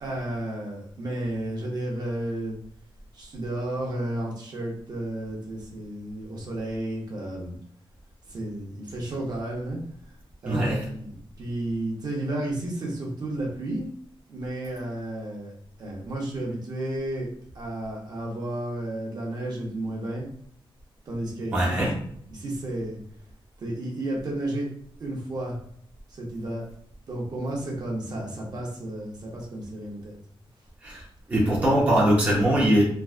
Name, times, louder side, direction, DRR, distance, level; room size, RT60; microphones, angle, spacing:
voice 1, 0.0-2.6 3.1-7.5 8.3-9.8 10.4-11.1 11.4-13.9 14.3-15.5 15.8-17.3 17.5-20.3 21.1-21.8 22.3-23.0 23.6-24.7 25.0-25.6 26.1-26.6 27.1-30.2, right 1 dB, 45° right, -2 dB, 0.8 m, -32 dB
voice 2, 10.5-10.8 21.5-21.9 30.8-31.0 31.3-32.8, right 1 dB, 15° right, -5 dB, 0.6 m, -21 dB
3.3 x 2.3 x 2.4 m, 0.64 s
wide cardioid pair, 180°, 9 cm